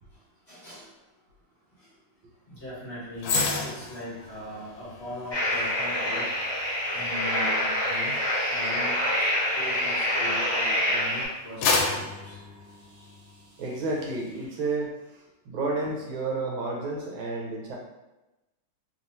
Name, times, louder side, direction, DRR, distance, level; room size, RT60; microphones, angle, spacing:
voice 1, 0.5-0.9 2.5-6.3 6.9-8.2 8.5-9.3 9.5-12.4, left 1 dB, 35° left, -10 dB, 1.3 m, -39 dB
sound 1, 3.2-10.6 11.1-13.4 13.8-14.0, left 4 dB, 80° left, 1.4 m, -32 dB
sound 2, 5.3-11.2, left 1 dB, 20° left, 0.8 m, -26 dB
voice 2, 12.8-13.2 13.6-14.9 15.5-17.8, right 3 dB, 75° right, -2 dB, 1.4 m, -31 dB
3.5 x 2.9 x 2.6 m, 1.0 s
omnidirectional pair, 2.3 m